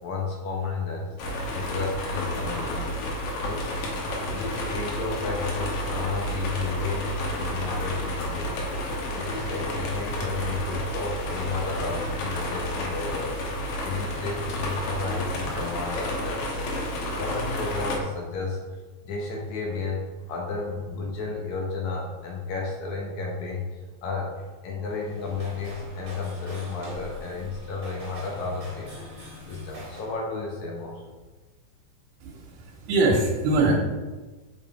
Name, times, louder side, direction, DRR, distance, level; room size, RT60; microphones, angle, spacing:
voice 1, 0.0-3.8 4.2-13.3 13.8-16.7 17.2-18.6 19.0-23.6 24.0-31.0, left 4 dB, 65° left, -1 dB, 2.1 m, -33 dB
sound 1, 1.2-18.0, equal, 80° left, 2.9 m, -31 dB
sound 2, 24.8-30.2, equal, 30° right, 2.5 m, -42 dB
voice 2, 32.2-33.7, right 2 dB, 90° right, -3 dB, 2.9 m, -23 dB
6.4 x 5.5 x 4.3 m, 1.3 s
omnidirectional pair, 4.2 m